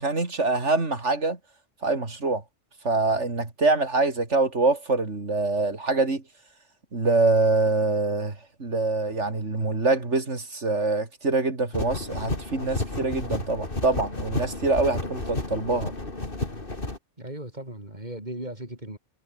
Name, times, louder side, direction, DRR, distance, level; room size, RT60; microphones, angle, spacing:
voice 1, 0.0-1.4 1.8-2.4 2.8-6.2 6.9-8.3 8.6-15.9, right 3 dB, 80° right, 3.8 m, -24 dB
sound 1, 11.7-17.0, left 2 dB, 50° left, 3.6 m, -32 dB
voice 2, 17.2-19.0, right 1 dB, 40° right, 6.8 m, -37 dB
omnidirectional pair, 1.2 m